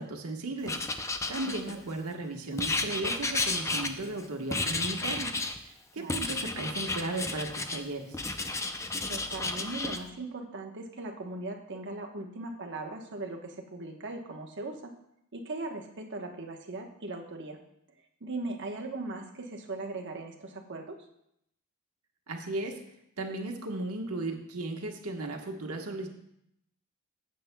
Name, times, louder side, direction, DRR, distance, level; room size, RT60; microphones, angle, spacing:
voice 1, 0.0-5.3 5.6-8.2 22.3-22.8 23.2-26.1, right 2 dB, 85° right, 2 dB, 1.3 m, -36 dB
Writing, 0.7-2.0 2.6-4.2 4.5-5.6 6.1-7.8 8.1-10.0, left 3 dB, 15° left, 0.5 m, -32 dB
voice 2, 1.4-1.8 6.0-6.2 9.1-14.9 15.3-17.6 18.2-21.0, right 2 dB, 55° right, 2 dB, 1.1 m, -39 dB
14.5 x 7.7 x 2.2 m, 0.77 s
head